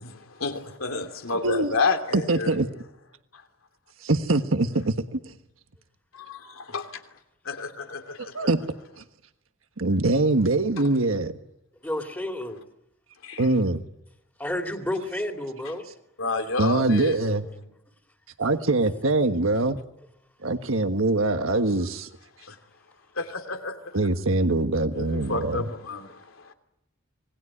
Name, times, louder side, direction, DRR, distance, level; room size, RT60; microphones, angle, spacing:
voice 1, 0.4-2.5 3.3-3.4 6.1-7.0 7.4-8.5 13.2-13.5 15.6-15.8 16.2-17.3 22.4-22.6 23.1-24.0 24.9-26.5, left 3 dB, 85° left, 2.9 m, -30 dB
voice 2, 2.1-2.7 4.0-5.2 8.2-8.6 9.0-9.1 9.8-11.3 13.4-13.8 16.6-17.4 18.4-19.8 20.4-22.1 23.9-25.6, right 2 dB, 80° right, 1.4 m, -23 dB
voice 3, 11.8-12.6 14.4-15.8, left 1 dB, 10° left, 2.7 m, -30 dB
26.5 x 20.5 x 9.8 m
head